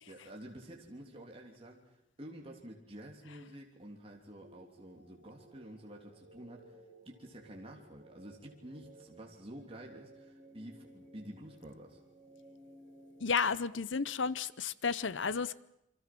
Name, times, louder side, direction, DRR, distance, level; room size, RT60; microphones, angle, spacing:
voice 1, 0.1-1.8 2.2-6.6 7.0-12.0, right 1 dB, 30° right, 0 dB, 3.2 m, -49 dB
sound 1, 4.4-13.3, right 1 dB, 50° right, 6.8 m, -58 dB
voice 2, 13.2-15.6, left 5 dB, 75° left, 17 dB, 0.8 m, -32 dB
28.0 x 24.5 x 6.1 m, 0.82 s
head